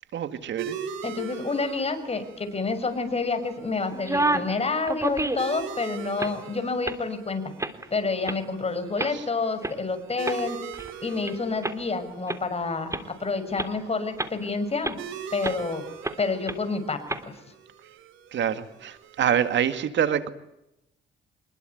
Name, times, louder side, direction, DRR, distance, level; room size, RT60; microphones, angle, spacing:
voice 1, 0.1-0.8 9.1-9.2 18.3-20.3, right 9 dB, 65° right, 2.3 m, -26 dB
sound 1, 0.6-19.7, right 8 dB, 90° right, 7.0 m, -43 dB
voice 2, 1.0-7.4 7.9-10.6 11.0-15.0 15.3-15.8 16.2-17.3, left 3 dB, 30° left, 6.5 m, -28 dB
sound 2, 3.9-4.5 4.9-5.6 6.0-6.4 6.9-7.0 7.6-7.9 8.3-8.4 9.0-9.1 9.6-9.7 10.2-11.3 11.6-11.7 12.3-12.4 12.9-13.0 13.6-13.7 14.2-14.4 14.8-15.0 15.4-15.6 16.0-16.2 16.5-16.6 17.1-17.2, right 2 dB, 15° right, 3.2 m, -28 dB
26.5 x 22.0 x 9.4 m
cardioid pair, 90°, 20 cm